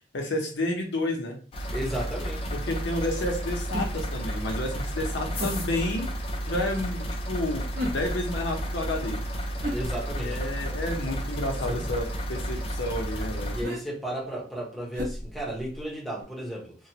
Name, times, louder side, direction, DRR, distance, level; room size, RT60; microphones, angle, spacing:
voice 1, 0.1-1.4 2.5-6.1 6.5-9.2 10.2-13.6, left 1 dB, 80° left, 0.8 m, -30 dB
sound 1, 1.5-13.6, equal, 30° left, 0.4 m, -32 dB
voice 2, 1.7-2.6 9.7-10.4 11.7-11.8 13.5-16.8, right 1 dB, ahead, 0.8 m, -34 dB
sound 2, 3.7-4.2 5.4-5.7 7.8-8.3 9.6-10.4 11.8-12.1 13.6-13.8 14.9-15.9 16.2-16.3, equal, 50° right, 0.9 m, -35 dB
3.0 x 2.2 x 2.8 m
head